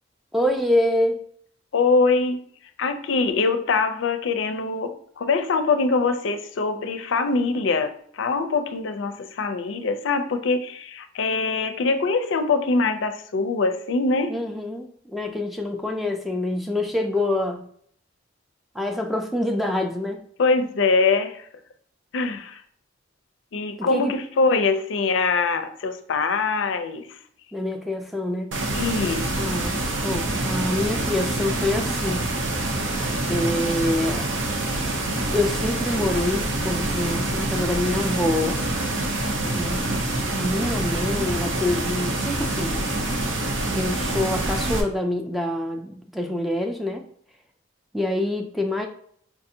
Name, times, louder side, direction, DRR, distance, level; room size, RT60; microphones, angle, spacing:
voice 1, 0.3-1.2 14.3-17.7 18.7-20.2 23.8-24.1 27.5-28.5 29.4-32.6 33.3-34.3 35.3-38.6 39.5-39.9 40.3-43.0 43.7-47.0 47.9-48.9, left 1 dB, ahead, 3 dB, 0.3 m, -26 dB
voice 2, 1.7-2.4 2.8-14.4 20.4-21.4 22.1-22.6 23.5-27.1 28.7-29.3 44.0-44.2, left 4 dB, 70° left, 8 dB, 0.4 m, -23 dB
sound 1, 28.5-44.8, right 2 dB, 75° right, 0.7 m, -26 dB
4.7 x 2.5 x 2.7 m, 0.63 s
head